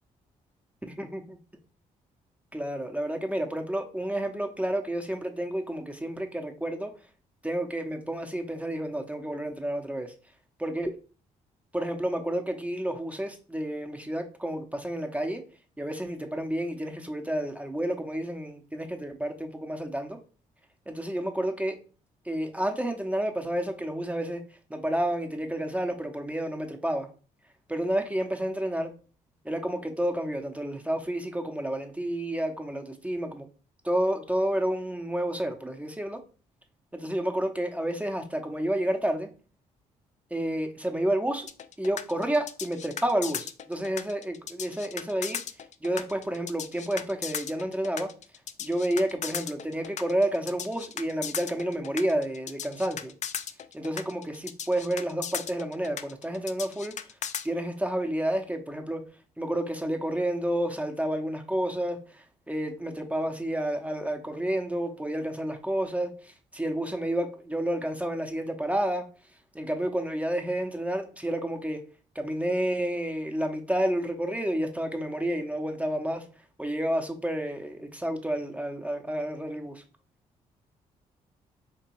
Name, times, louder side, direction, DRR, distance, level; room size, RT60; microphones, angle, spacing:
voice 1, 1.0-1.4 2.5-6.9 7.4-10.1 10.6-10.9 11.7-15.4 15.8-20.2 20.9-21.8 22.2-24.4 24.7-27.1 27.7-28.9 29.4-33.5 33.8-36.2 36.9-39.3 40.3-41.5 41.8-45.4 45.8-48.1 48.6-53.1 53.7-57.0 57.4-59.0 59.4-69.1 69.5-71.8 72.1-76.3 76.6-79.8, right 1 dB, 10° right, 4 dB, 0.7 m, -30 dB
sound 1, 41.5-57.5, left 8 dB, 45° left, 0.4 m, -36 dB
3.5 x 2.9 x 2.9 m, 0.36 s
supercardioid pair, 55°, 16 cm